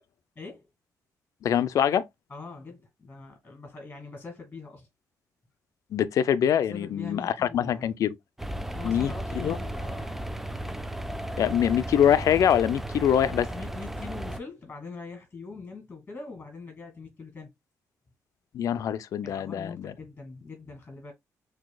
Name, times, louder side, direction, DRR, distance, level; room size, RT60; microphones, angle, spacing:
voice 1, 0.4-0.7 2.3-4.9 6.7-7.9 8.7-10.4 13.5-17.5 19.2-21.1, left 4 dB, 25° left, 1.9 m, -43 dB
voice 2, 1.4-2.0 5.9-8.1 8.8-9.6 11.4-13.5 18.5-19.9, left 9 dB, 65° left, 0.5 m, -24 dB
sound 1, 8.4-14.4, right 1 dB, 5° right, 0.4 m, -35 dB
6.0 x 2.8 x 2.2 m
cardioid pair, 105°, 6 cm